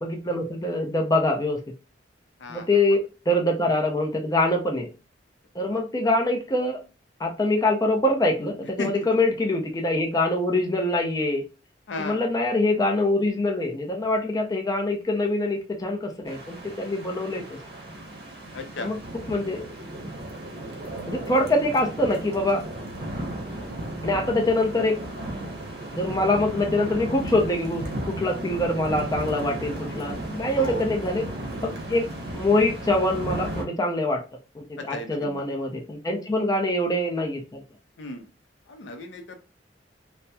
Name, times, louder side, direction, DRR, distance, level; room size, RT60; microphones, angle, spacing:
voice 1, 0.0-1.6 2.5-4.9 5.5-6.8 7.2-11.4 12.0-17.6 18.8-19.0 19.3-19.6 21.1-22.6 24.0-25.0 26.0-31.3 31.6-34.2 34.5-37.6, left 1 dB, 20° left, 1 dB, 0.5 m, -24 dB
voice 2, 11.9-12.3 18.5-18.9 20.8-21.1 30.5-30.8 34.8-35.4 38.0-38.3 38.7-39.4, left 2 dB, 75° left, 5 dB, 0.5 m, -35 dB
sound 1, 16.3-33.6, right 1 dB, 60° right, 0.7 m, -35 dB
2.8 x 2.0 x 2.2 m, 0.31 s
head